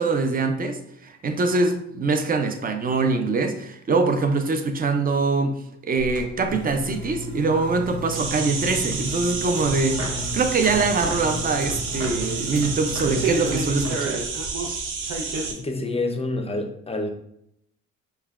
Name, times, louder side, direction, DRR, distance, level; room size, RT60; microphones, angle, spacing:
voice 1, 0.0-10.0 10.3-14.2, right 3 dB, 30° right, 7 dB, 0.5 m, -23 dB
sound 1, 6.0-13.9, equal, 50° right, 1.1 m, -33 dB
sound 2, 8.1-15.5, right 4 dB, 80° right, 0.7 m, -29 dB
voice 2, 15.5-17.1, left 2 dB, 20° left, 4 dB, 0.5 m, -27 dB
5.3 x 2.2 x 2.4 m, 0.74 s
cardioid pair, 90°, 30 cm